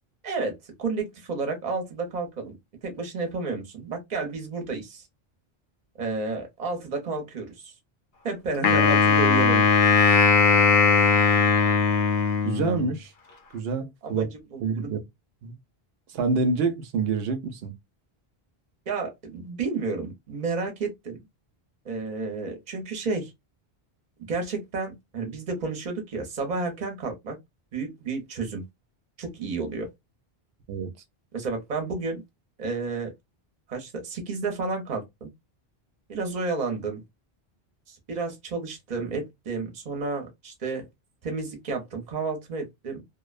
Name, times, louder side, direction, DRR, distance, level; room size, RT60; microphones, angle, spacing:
voice 1, 0.2-2.6 2.8-5.0 6.0-7.7 8.2-9.7 14.0-15.0 18.9-21.2 21.8-23.3 24.3-27.4 27.7-28.6 29.2-29.9 31.3-32.2 32.6-33.1 33.7-35.3 36.1-37.0 37.9-40.9 41.2-43.0, right 4 dB, 45° right, 0.8 m, -31 dB
Wind instrument woodwind instrument, 8.6-12.9, left 5 dB, 70° left, 0.9 m, -19 dB
voice 2, 12.4-13.1 13.5-14.3 14.6-15.0 15.4-15.6 16.1-17.7 30.7-30.9, right 4 dB, 75° right, 0.8 m, -27 dB
2.5 x 2.1 x 2.3 m
omnidirectional pair, 1.0 m